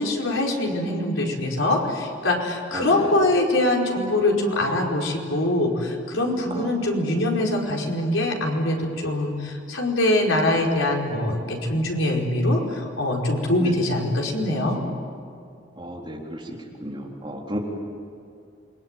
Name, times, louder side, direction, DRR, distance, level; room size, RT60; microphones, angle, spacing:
voice 1, 0.0-14.8, left 1 dB, 90° left, 0 dB, 5.0 m, -23 dB
voice 2, 15.8-17.6, equal, 25° right, -1 dB, 4.0 m, -33 dB
28.5 x 22.5 x 9.2 m, 2.5 s
head